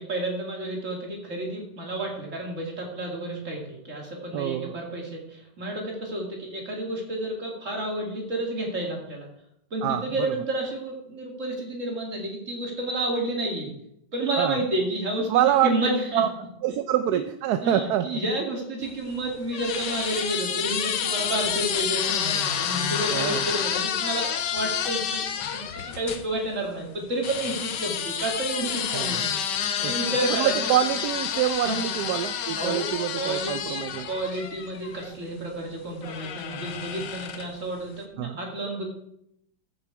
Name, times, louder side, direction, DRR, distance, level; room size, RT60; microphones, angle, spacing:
voice 1, 0.0-9.3 9.7-13.7 14.1-16.2 17.1-17.2 17.6-30.7 31.6-31.8 32.6-32.9 33.1-38.9, right 1 dB, 45° right, 0 dB, 2.7 m, -30 dB
voice 2, 4.3-4.8 9.8-10.1 14.4-14.6 15.3-15.7 16.1-16.3 16.6-18.1 23.1-23.4 28.9-29.1 29.8-30.0 30.3-34.1 38.2-38.4, right 12 dB, 70° right, 10 dB, 1.0 m, -25 dB
sound 1, 18.9-26.2 27.2-35.1 36.0-37.6, left 8 dB, 75° left, 1.5 m, -29 dB
14.5 x 6.9 x 4.7 m, 0.77 s
omnidirectional pair, 1.9 m